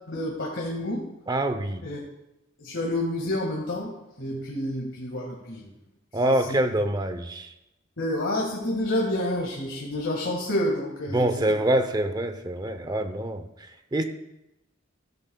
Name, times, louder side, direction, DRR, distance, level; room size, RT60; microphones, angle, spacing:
voice 1, 0.1-1.0 1.8-2.0 2.6-3.9 4.2-5.7 6.2-6.6 8.0-11.3, left 1 dB, 80° left, -2 dB, 1.8 m, -29 dB
voice 2, 1.3-1.8 6.1-7.5 11.1-13.5 13.9-14.0, right 1 dB, 20° right, 8 dB, 0.7 m, -25 dB
15.0 x 10.5 x 2.3 m, 0.92 s
head